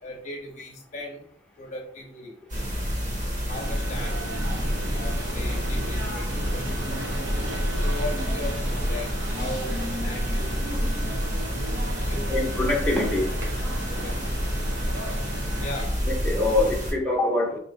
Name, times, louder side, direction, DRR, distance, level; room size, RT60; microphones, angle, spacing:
voice 1, 0.0-1.3 1.6-2.4 3.5-4.2 4.9-7.0 7.8-9.1 9.3-10.6 12.0-12.5 13.5-14.4 15.6-15.9, left 2 dB, 40° left, 0 dB, 0.7 m, -38 dB
sound 1, 2.5-16.9, equal, 45° right, 1.3 m, -28 dB
sound 2, 3.5-15.8, equal, 90° right, 1.0 m, -35 dB
voice 2, 12.3-13.3 16.0-17.6, left 2 dB, 5° left, -3 dB, 0.8 m, -24 dB
4.9 x 2.8 x 2.6 m, 0.62 s
head